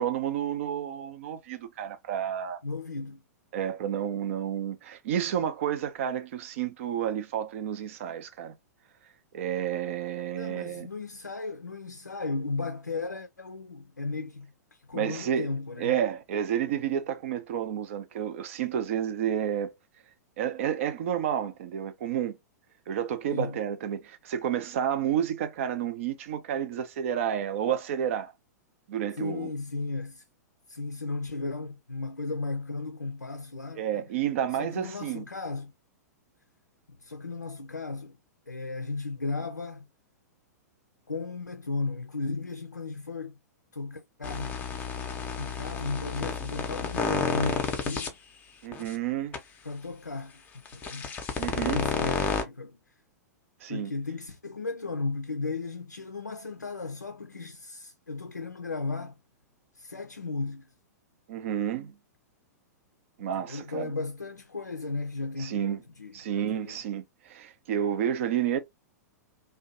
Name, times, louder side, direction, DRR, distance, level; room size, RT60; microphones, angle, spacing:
voice 1, 0.0-2.6 3.5-8.5 9.3-10.9 14.9-15.5 15.8-19.7 20.4-22.4 22.9-28.3 28.9-29.5 33.8-35.2 48.6-49.4 51.4-51.9 53.6-53.9 61.3-61.9 63.2-63.9 65.4-65.8 66.1-68.6, right 9 dB, 50° right, 0.5 m, -30 dB
voice 2, 2.6-3.2 10.4-16.0 23.3-23.6 29.2-30.2 30.7-34.1 34.5-35.7 37.0-38.2 38.5-39.8 41.1-43.4 43.7-48.1 49.6-51.1 51.7-52.8 53.7-59.2 59.7-60.7 63.2-66.8, left 3 dB, 85° left, 0.4 m, -35 dB
sound 1, 44.2-48.1 48.7-48.9 49.3-49.4 50.7-52.4, left 5 dB, 20° left, 0.6 m, -31 dB
2.6 x 2.2 x 2.5 m
figure-of-eight pair, 105°, 9 cm